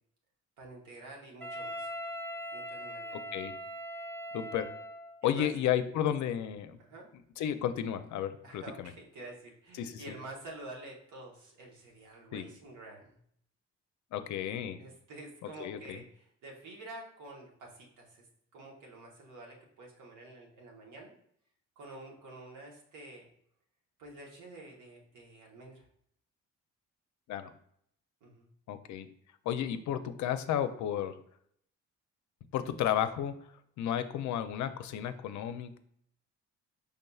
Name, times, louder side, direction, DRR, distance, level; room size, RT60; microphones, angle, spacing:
voice 1, 0.6-1.9 2.5-3.3 5.2-5.5 6.8-7.1 8.4-13.2 14.8-18.3 18.5-21.1 21.8-23.3 24.0-25.9 28.2-28.5, right 2 dB, 80° right, -1 dB, 1.2 m, -49 dB
Wind instrument woodwind instrument, 1.4-5.2, equal, 5° left, 0.9 m, -41 dB
voice 2, 4.3-4.7 5.2-6.8 7.4-8.9 9.8-10.0 12.3-12.5 14.1-14.8 15.6-16.0 27.3-27.5 28.7-29.1 29.5-31.1 32.5-33.3 33.8-35.8, left 10 dB, 70° left, 10 dB, 0.5 m, -32 dB
5.4 x 3.5 x 2.3 m, 0.69 s
cardioid pair, 90°, 30 cm